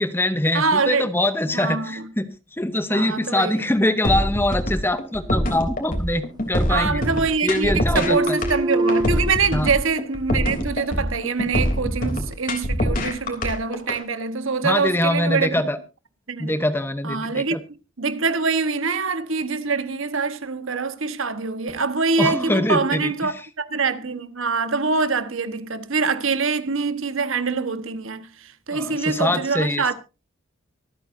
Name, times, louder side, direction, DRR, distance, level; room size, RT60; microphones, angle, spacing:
voice 1, 0.0-7.0 7.4-8.4 9.5-9.7 14.6-15.8 16.4-17.6 22.2-23.3 28.7-29.9, left 1 dB, 10° left, 0.8 m, -23 dB
voice 2, 0.5-1.1 1.5-2.1 2.9-3.6 6.7-15.5 16.3-16.5 17.0-17.6 18.0-29.9, right 4 dB, 70° right, 1.2 m, -24 dB
swampfunk mgreel, 4.0-14.0, equal, 40° left, 3.2 m, -24 dB
sound 1, 5.2-6.2 6.5-7.4 7.7-9.3, right 2 dB, 20° right, 0.5 m, -26 dB
24.5 x 9.0 x 2.7 m
head